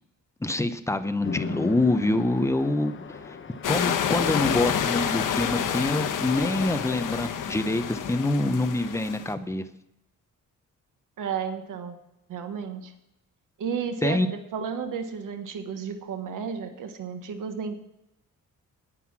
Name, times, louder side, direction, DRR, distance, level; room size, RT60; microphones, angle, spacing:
voice 1, 0.4-3.4 3.7-9.6 14.0-14.3, left 2 dB, 10° left, 10 dB, 0.7 m, -26 dB
Chatter / Traffic noise roadway noise / Train, 1.2-7.2, left 5 dB, 40° left, 1.0 m, -39 dB
sound 1, 3.6-9.3, left 9 dB, 80° left, 1.1 m, -28 dB
voice 2, 11.2-11.9 12.3-12.9 13.6-17.8, right 6 dB, 75° right, 7 dB, 1.2 m, -32 dB
10.0 x 9.2 x 5.9 m, 0.85 s
cardioid pair, 120°, 31 cm